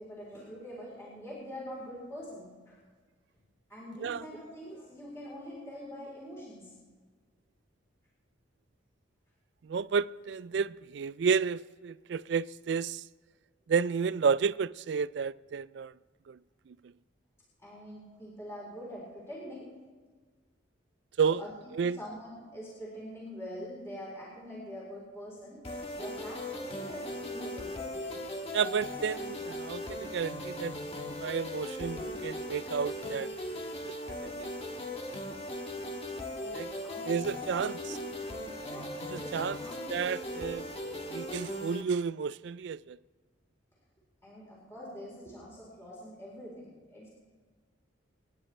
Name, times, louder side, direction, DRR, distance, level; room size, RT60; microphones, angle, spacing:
voice 1, 0.0-2.8 3.7-6.7 17.6-19.7 21.4-25.6 26.0-28.2 36.4-38.0 38.6-40.0 44.2-47.1, equal, 15° left, 3.9 m, -45 dB
voice 2, 9.6-13.0 13.7-15.9 16.3-16.4 16.7-16.8 21.2-21.4 21.7-22.0 28.5-30.8 31.2-34.0 34.2-34.5 36.5-36.7 37.1-38.0 39.1-39.6 39.9-40.7 41.1-43.0, right 6 dB, 60° right, 0.3 m, -31 dB
sound 1, 25.6-41.8, left 1 dB, 30° left, 1.4 m, -38 dB
27.5 x 10.5 x 3.3 m
head